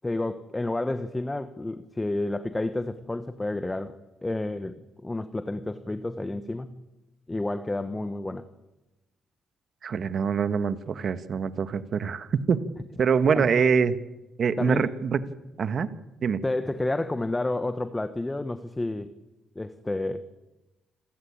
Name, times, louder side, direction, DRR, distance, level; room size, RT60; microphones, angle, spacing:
voice 1, 0.0-4.0 4.2-6.8 7.3-8.4 13.3-13.5 14.6-14.9 16.4-19.1 19.5-20.3, left 2 dB, 15° left, 11 dB, 1.2 m, -30 dB
voice 2, 9.8-12.6 13.0-14.0 14.4-15.2 15.6-15.9 16.2-16.4, right 6 dB, 50° right, 13 dB, 1.3 m, -24 dB
27.5 x 13.5 x 8.7 m, 1.0 s
cardioid pair, 90°, 0 cm